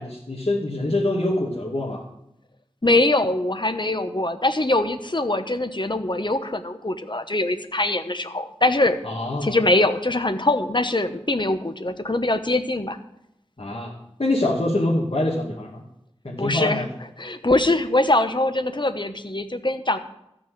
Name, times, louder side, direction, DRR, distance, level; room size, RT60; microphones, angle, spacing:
voice 1, 0.0-2.0 9.0-9.6 13.6-13.9 14.2-15.8 16.2-16.9, left 1 dB, 65° left, -5 dB, 2.3 m, -25 dB
voice 2, 2.8-9.0 9.4-13.0 16.4-16.9 17.2-20.0, left 2 dB, 50° left, 9 dB, 1.1 m, -22 dB
14.0 x 6.2 x 7.9 m, 0.82 s
wide cardioid pair, 40°, 11 cm